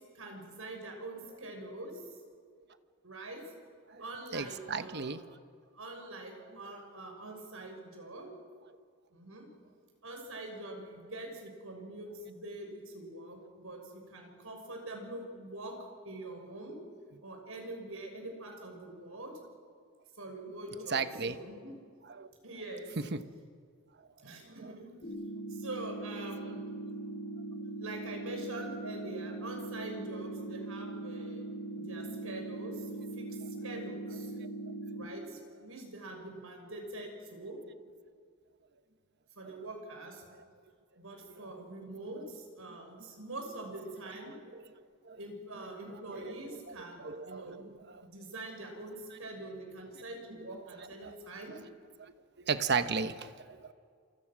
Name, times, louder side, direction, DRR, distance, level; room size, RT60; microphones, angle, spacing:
voice 1, 0.1-2.0 3.0-3.4 4.0-5.2 5.7-8.3 9.1-9.4 10.0-15.7 16.0-16.8 17.2-19.3 20.2-21.7 22.4-22.9 24.2-24.9 25.5-26.8 27.8-31.5 31.8-33.2 33.6-34.3 34.9-37.6 39.4-40.2 41.0-44.3 45.2-47.7 48.0-51.5, right 2 dB, 75° right, 2 dB, 6.5 m, -44 dB
voice 2, 4.3-5.2 20.9-21.4 22.1-22.3 23.0-23.3 24.5-24.7 34.4-34.5 39.4-39.6 44.3-44.6 45.0-45.2 46.2-46.4 46.7-48.0 50.8-51.1 51.5-51.6 52.0-53.7, right 5 dB, 55° right, 10 dB, 1.2 m, -36 dB
sound 1, 25.0-35.0, right 2 dB, 50° left, 6.0 m, -40 dB
28.0 x 25.5 x 6.3 m, 2.1 s
head